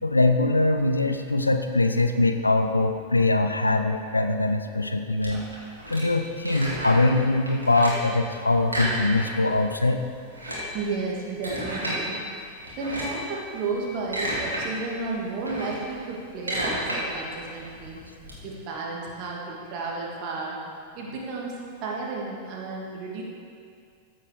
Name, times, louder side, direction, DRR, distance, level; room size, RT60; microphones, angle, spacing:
voice 1, 0.0-5.4 5.9-10.0, left 2 dB, 80° left, 7 dB, 0.7 m, -22 dB
sound 1, 5.2-7.1 7.5-8.1 8.6-9.5 9.8-9.9 10.2-12.0 12.6-13.3 13.8-14.6 15.0-18.3, right 1 dB, 80° right, 3.0 m, -32 dB
voice 2, 10.7-12.2 12.8-18.0 18.4-20.6 20.9-21.5 21.8-23.2, right 3 dB, 40° right, -2 dB, 2.6 m, -32 dB
15.0 x 7.6 x 4.9 m, 2.3 s
figure-of-eight pair, 90°, 0 cm